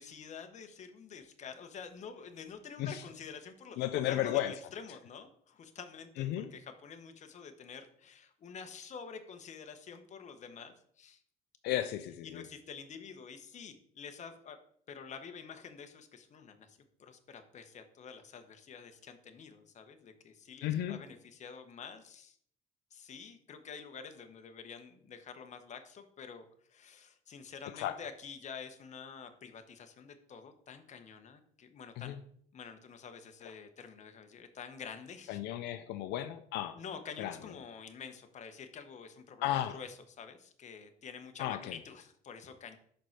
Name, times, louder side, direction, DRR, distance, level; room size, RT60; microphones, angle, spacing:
voice 1, 0.0-11.2 12.2-14.6 14.9-22.4 22.9-32.2 32.5-35.4 36.7-42.8, left 6 dB, 45° left, 7 dB, 1.0 m, -48 dB
voice 2, 3.8-4.5 6.2-6.5 11.6-12.4 20.6-21.0 27.7-28.0 32.0-32.2 35.3-36.8 37.2-37.4 39.4-39.8 41.4-41.8, left 13 dB, 85° left, 9 dB, 0.5 m, -34 dB
5.2 x 4.5 x 5.8 m, 0.62 s
cardioid pair, 110°, 17 cm